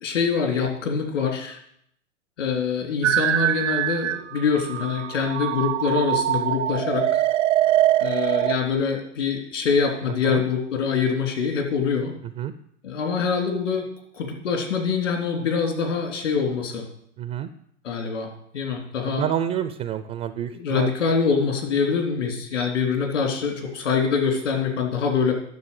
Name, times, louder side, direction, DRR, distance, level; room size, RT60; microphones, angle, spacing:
voice 1, 0.0-1.6 2.4-7.1 8.0-12.1 12.8-13.9 14.1-16.9 17.8-18.3 18.5-19.2 20.4-25.3, left 6 dB, 75° left, 3 dB, 3.6 m, -24 dB
sound 1, 3.0-8.6, right 12 dB, 75° right, 0.7 m, -23 dB
voice 2, 17.2-17.5 19.1-20.9, right 10 dB, 20° right, 12 dB, 0.4 m, -28 dB
10.5 x 6.9 x 8.1 m, 0.70 s
hypercardioid pair, 110°, 37 cm